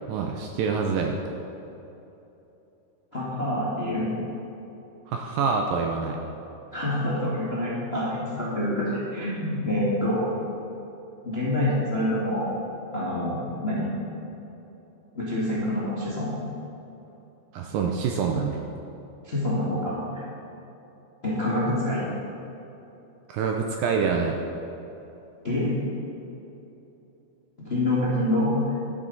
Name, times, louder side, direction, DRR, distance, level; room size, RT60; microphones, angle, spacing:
voice 1, 0.1-1.2 5.1-6.2 17.5-18.6 23.3-24.4, right 5 dB, 75° right, 2 dB, 2.1 m, -26 dB
voice 2, 3.1-4.1 6.7-10.3 11.2-12.5 12.9-13.9 15.1-16.3 19.2-20.2 21.2-22.0 25.4-25.7 27.6-28.5, left 1 dB, 35° left, -7 dB, 0.9 m, -26 dB
12.0 x 9.9 x 4.0 m, 3.0 s
omnidirectional pair, 4.6 m